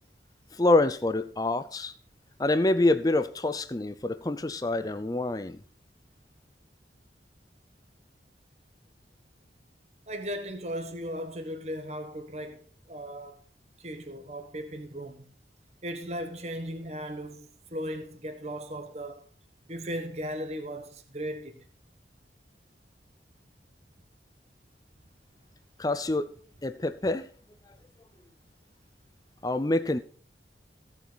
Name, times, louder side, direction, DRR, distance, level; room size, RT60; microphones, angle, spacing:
voice 1, 0.5-1.9 2.4-5.6 25.8-26.3 26.6-27.3 29.4-30.0, left 2 dB, 20° left, 0.5 m, -26 dB
voice 2, 10.1-13.4 13.8-15.3 15.8-19.3 19.7-21.6, equal, 35° right, 1.3 m, -37 dB
15.5 x 7.3 x 4.0 m
head